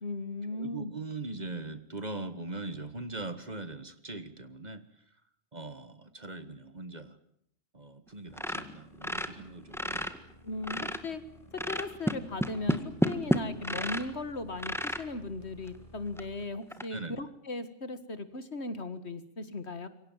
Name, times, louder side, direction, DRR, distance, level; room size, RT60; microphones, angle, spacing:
voice 1, 0.0-0.9 10.4-11.2 11.5-19.9, left 2 dB, 65° left, 12 dB, 2.2 m, -37 dB
voice 2, 0.5-5.0 5.5-7.2 7.7-10.2 16.9-17.3, right 2 dB, 35° right, 12 dB, 1.7 m, -41 dB
sound 1, 8.3-16.4, equal, 30° left, 7.9 m, -55 dB
sound 2, 8.3-10.2 10.5-11.1 11.5-14.1 14.6-15.0 15.7-15.8 16.2-16.3 16.7-16.8, equal, ahead, 1.7 m, -31 dB
27.0 x 24.0 x 7.4 m, 0.70 s
omnidirectional pair, 1.2 m